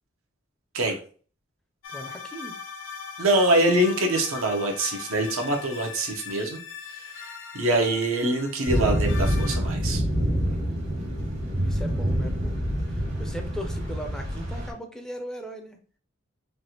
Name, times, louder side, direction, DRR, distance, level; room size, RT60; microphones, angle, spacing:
sound 1, 1.8-9.6, left 6 dB, 65° left, 0.6 m, -40 dB
voice 1, 1.9-2.6 11.6-12.6 12.9-15.8, equal, 5° left, 4 dB, 0.4 m, -38 dB
voice 2, 3.2-6.6 6.9-7.0 7.5-10.0, right 1 dB, 85° right, 3 dB, 0.8 m, -24 dB
sound 2, 8.7-14.7, equal, 60° right, 1.4 m, -26 dB
3.2 x 2.4 x 2.8 m, 0.42 s
head